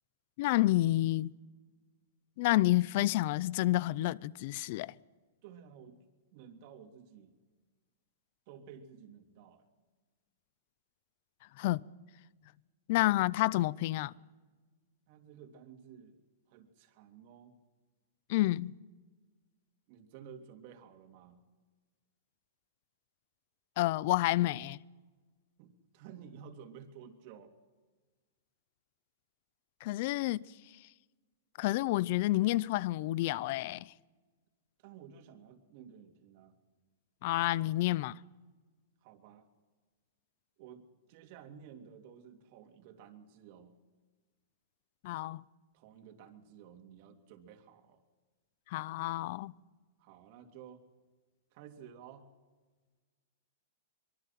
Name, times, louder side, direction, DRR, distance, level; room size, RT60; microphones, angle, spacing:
voice 1, 0.4-1.3 2.4-4.9 11.6-11.8 12.9-14.1 18.3-18.7 23.8-24.8 29.8-30.4 31.6-33.9 37.2-38.2 45.0-45.4 48.7-49.5, left 17 dB, 45° left, 0.6 m, -29 dB
voice 2, 5.4-6.0 6.3-7.4 8.5-9.7 15.1-16.2 16.5-17.6 19.9-21.5 25.6-27.5 34.8-36.5 39.0-39.5 40.6-43.8 45.7-48.0 50.0-50.8 51.5-52.3, right 8 dB, 45° right, 3.0 m, -53 dB
24.5 x 23.5 x 6.0 m
hypercardioid pair, 155°, 0 cm